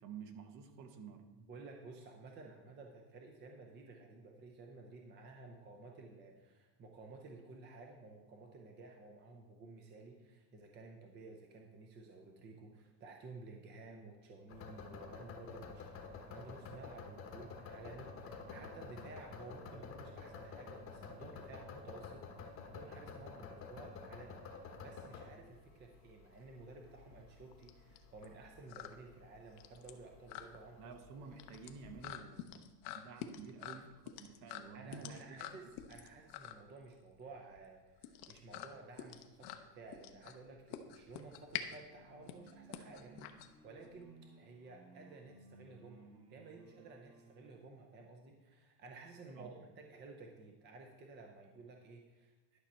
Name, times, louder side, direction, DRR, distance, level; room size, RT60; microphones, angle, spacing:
voice 1, 0.0-1.2 30.8-32.6 32.9-35.6 49.4-49.6, right 5 dB, 40° right, 7 dB, 1.0 m, -51 dB
voice 2, 1.4-31.3 34.7-52.6, right 3 dB, 20° right, 3 dB, 0.6 m, -54 dB
sound 1, 14.5-32.0, left 4 dB, 25° left, 1.1 m, -51 dB
sound 2, 26.2-44.0, left 11 dB, 50° left, 0.8 m, -48 dB
sound 3, 41.8-47.6, right 3 dB, 75° right, 2.6 m, -60 dB
11.5 x 5.8 x 4.3 m, 1.2 s
supercardioid pair, 150°, 49 cm